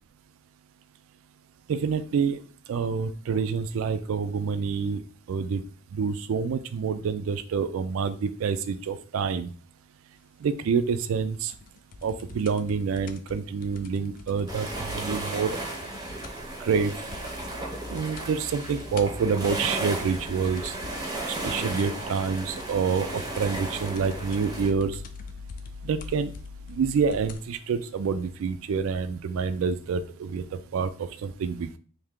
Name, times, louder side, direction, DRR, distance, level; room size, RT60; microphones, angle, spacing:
voice 1, 1.7-2.4 2.7-5.0 5.3-5.6 5.9-9.5 10.4-11.5 12.0-15.6 16.6-17.0 17.9-20.7 21.4-25.0 25.8-26.3 26.7-31.8, right 5 dB, 65° right, 12 dB, 0.3 m, -27 dB
sound 1, 11.5-16.5 16.8-16.9 17.1-17.6 17.8-18.3 18.7-27.5 28.3-28.4, left 3 dB, 40° left, 0.3 m, -46 dB
sound 2, 14.5-24.7, right 2 dB, 15° right, 0.6 m, -35 dB
sound 3, 16.4-27.4, left 3 dB, 90° left, 0.8 m, -45 dB
3.3 x 2.7 x 3.6 m, 0.41 s
head